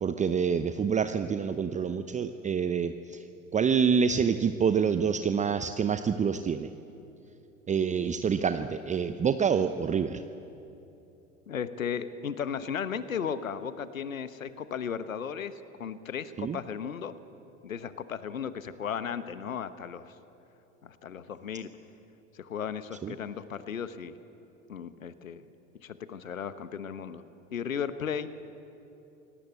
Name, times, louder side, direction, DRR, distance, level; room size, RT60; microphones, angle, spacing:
voice 1, 0.0-3.2 3.5-6.7 7.7-10.2 16.4-16.6 23.0-23.1, right 6 dB, 20° right, 9 dB, 0.8 m, -27 dB
voice 2, 11.5-17.2 17.6-20.1 20.8-21.7 22.3-24.1 24.7-25.5 25.8-27.2 27.5-28.3, left 7 dB, 80° left, 13 dB, 1.1 m, -35 dB
27.0 x 18.5 x 8.2 m, 2.9 s
figure-of-eight pair, 85°, 40 cm